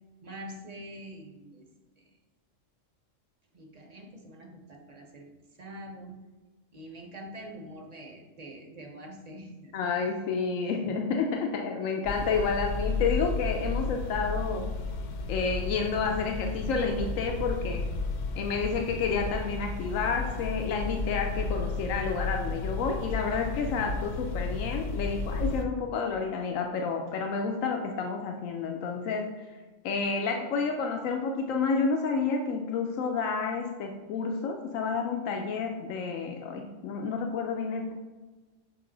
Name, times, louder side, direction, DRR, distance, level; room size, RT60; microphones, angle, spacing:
voice 1, 0.2-1.7 2.0-2.1 3.5-6.2 6.7-9.8 10.6-10.7, right 1 dB, 40° right, 2 dB, 0.7 m, -45 dB
voice 2, 9.7-14.7 15.3-17.9 18.4-29.3 29.8-37.9, left 5 dB, 90° left, 3 dB, 1.0 m, -30 dB
sound 1, 12.0-25.6, left 3 dB, 65° left, 0.8 m, -33 dB
6.6 x 4.3 x 3.8 m, 1.3 s
omnidirectional pair, 1.3 m